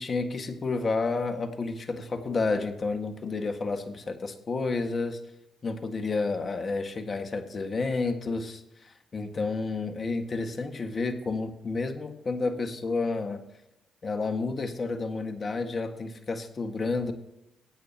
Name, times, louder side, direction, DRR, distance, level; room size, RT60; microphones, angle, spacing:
voice 1, 0.0-5.2 5.6-13.4 14.0-17.1, left 3 dB, 45° left, 7 dB, 1.8 m, -30 dB
21.0 x 9.0 x 2.9 m, 0.88 s
supercardioid pair, 55°, 0 cm